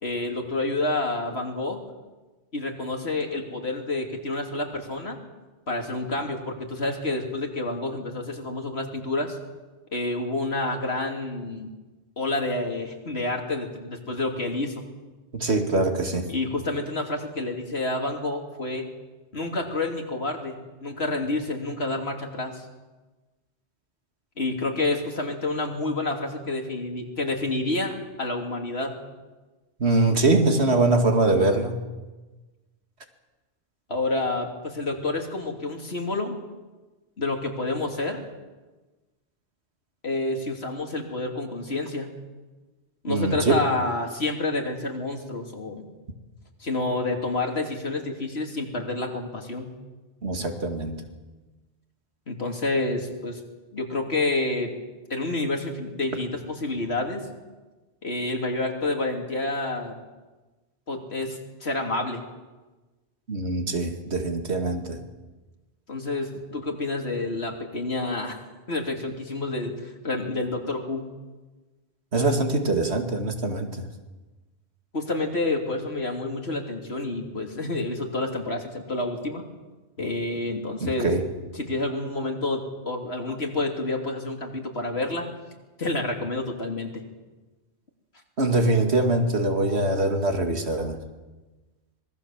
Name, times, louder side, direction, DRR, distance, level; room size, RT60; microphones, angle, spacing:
voice 1, 0.0-1.8 2.5-5.2 5.7-9.4 9.9-11.7 12.2-14.8 16.3-18.8 19.3-22.6 24.4-28.9 33.9-36.4 37.2-38.2 40.0-42.1 43.0-45.9 46.6-49.7 52.3-53.4 53.7-54.7 55.1-57.2 58.0-60.0 60.9-62.2 65.9-68.4 68.7-71.1 74.9-79.4 80.0-81.1 81.5-85.3 85.8-87.0, left 2 dB, 65° left, 2 dB, 3.3 m, -29 dB
voice 2, 15.3-16.3 29.8-31.8 43.1-43.6 50.2-51.0 63.3-65.0 72.1-73.7 80.8-81.3 88.4-91.0, right 2 dB, 70° right, 5 dB, 2.6 m, -23 dB
25.5 x 20.0 x 7.4 m, 1.2 s
omnidirectional pair, 1.1 m